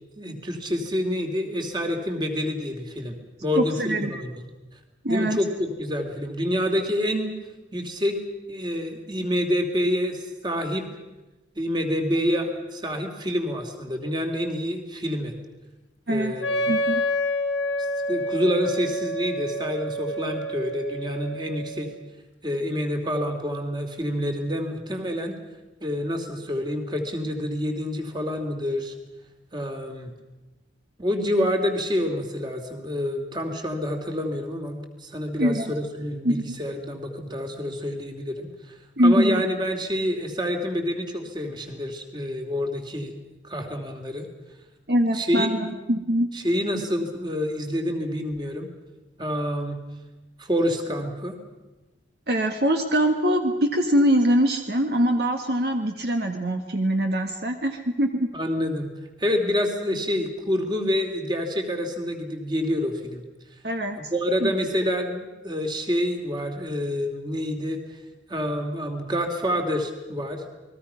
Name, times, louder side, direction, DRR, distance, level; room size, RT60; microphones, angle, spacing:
voice 1, 0.2-4.3 5.1-7.3 7.7-8.2 8.5-10.9 11.6-15.3 16.1-16.8 18.1-21.9 22.4-25.4 25.8-28.9 29.5-30.1 31.0-38.8 39.0-43.1 43.4-44.3 45.1-45.7 46.3-48.7 49.2-49.8 50.4-51.3 58.3-58.9 59.2-63.2 64.1-67.8 68.3-70.5, equal, 25° right, 4 dB, 2.8 m, -27 dB
voice 2, 3.5-4.1 5.0-5.4 16.1-16.4 16.7-17.0 35.4-35.7 36.2-36.6 39.0-39.4 44.9-46.3 52.3-58.3 58.6-58.7 63.6-64.0 64.4-64.5, equal, 60° right, 5 dB, 1.6 m, -23 dB
Wind instrument woodwind instrument, 16.4-22.0, equal, 80° left, 1.9 m, -28 dB
29.0 x 21.0 x 5.8 m, 1.1 s
head